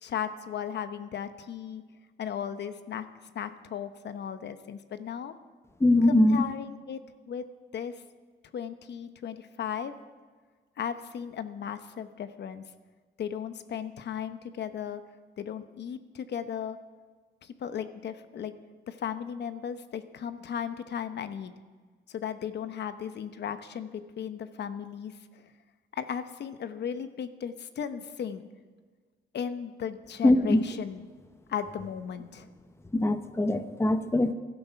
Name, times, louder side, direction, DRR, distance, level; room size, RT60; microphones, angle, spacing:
voice 1, 0.0-1.8 2.2-3.1 3.3-5.3 6.1-7.0 7.3-7.4 7.7-8.0 8.5-9.9 10.8-12.6 13.2-15.0 15.4-16.8 17.4-18.5 18.9-21.5 22.1-25.5 25.9-28.5 29.3-31.0 31.5-32.5, left 8 dB, 60° left, 11 dB, 1.0 m, -36 dB
voice 2, 5.8-6.4 30.2-30.6 32.9-34.3, left 1 dB, 15° left, 10 dB, 0.8 m, -22 dB
15.0 x 12.5 x 5.8 m, 1.5 s
cardioid pair, 90°, 20 cm